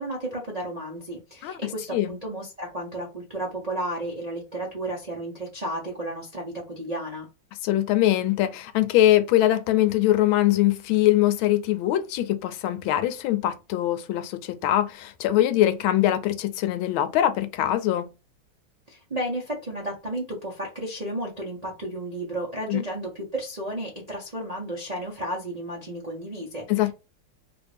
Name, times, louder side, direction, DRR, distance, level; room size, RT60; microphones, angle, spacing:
voice 1, 0.0-7.3 18.9-26.7, right 1 dB, 55° right, 0.4 m, -33 dB
voice 2, 7.6-18.1 22.7-22.8 26.7-26.9, left 13 dB, 85° left, 1.4 m, -22 dB
3.3 x 2.5 x 3.4 m
omnidirectional pair, 2.2 m